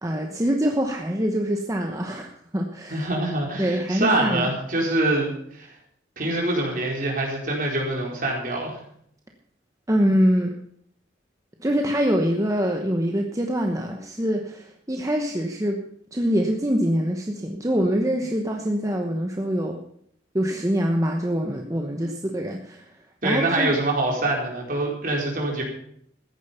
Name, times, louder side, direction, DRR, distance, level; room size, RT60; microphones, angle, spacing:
voice 1, 0.0-3.1 3.6-4.5 9.9-10.5 11.6-15.8 16.1-19.8 20.3-23.7, equal, 20° right, 3 dB, 1.0 m, -24 dB
voice 2, 2.9-5.7 6.2-8.8 23.2-25.6, right 2 dB, 45° right, -1 dB, 4.5 m, -25 dB
14.5 x 10.5 x 5.7 m, 0.67 s
head